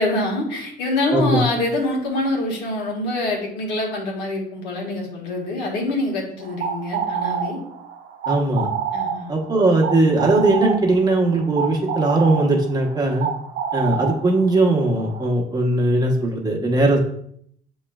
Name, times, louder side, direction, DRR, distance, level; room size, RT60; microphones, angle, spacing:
voice 1, 0.0-7.6 8.9-9.3, left 2 dB, 85° left, -1 dB, 1.4 m, -25 dB
voice 2, 1.1-1.5 8.3-8.7 9.3-13.3 13.7-17.0, right 2 dB, 25° right, 0 dB, 1.0 m, -19 dB
sound 1, 6.4-15.3, right 7 dB, 65° right, 0.7 m, -28 dB
7.2 x 3.1 x 2.3 m, 0.66 s
cardioid pair, 110°, 17 cm